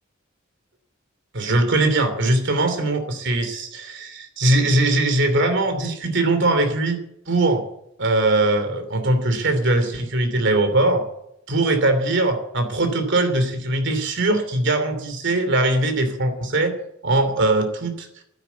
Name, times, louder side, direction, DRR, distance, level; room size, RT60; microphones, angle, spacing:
voice 1, 1.3-7.0 7.3-7.6 8.0-11.0 11.5-16.7 17.0-18.1, right 2 dB, 60° right, 8 dB, 2.9 m, -21 dB
12.5 x 10.0 x 9.3 m, 0.78 s
head